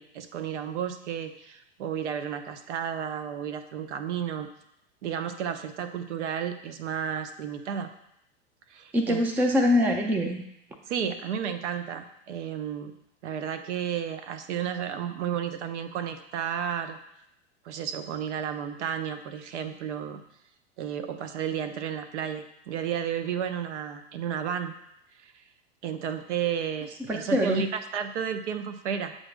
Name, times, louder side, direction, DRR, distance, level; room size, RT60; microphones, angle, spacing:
voice 1, 0.0-4.5 5.0-7.9 8.7-9.2 10.9-13.0 13.2-17.0 17.6-20.2 20.8-24.7 25.2-25.4 25.8-29.2, right 8 dB, 65° right, 8 dB, 0.7 m, -32 dB
voice 2, 8.9-10.4 27.1-27.6, left 1 dB, 5° right, 3 dB, 0.4 m, -24 dB
7.5 x 2.6 x 5.0 m, 0.79 s
hypercardioid pair, 100°, 37 cm